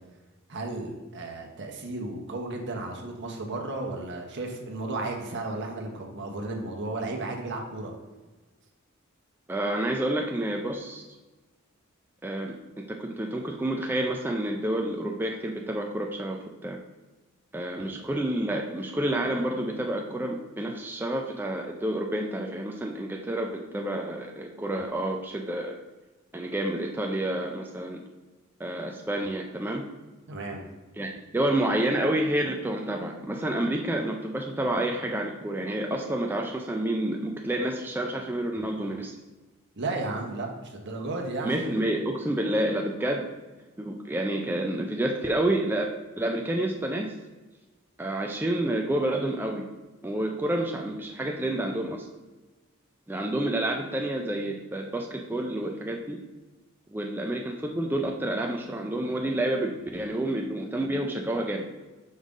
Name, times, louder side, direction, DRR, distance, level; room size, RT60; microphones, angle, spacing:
voice 1, 0.5-7.9 17.8-18.0 30.3-30.6 39.8-41.7, right 2 dB, 55° right, 1 dB, 1.0 m, -34 dB
voice 2, 9.5-11.0 12.2-12.5 12.9-16.4 16.6-16.8 17.5-25.8 26.3-28.0 28.6-29.9 31.0-39.2 41.4-43.3 43.8-45.9 46.2-47.1 48.0-49.6 50.0-52.1 53.1-56.2 56.9-61.7, right 1 dB, 10° right, 1 dB, 0.4 m, -29 dB
5.5 x 5.0 x 3.6 m, 1.2 s
head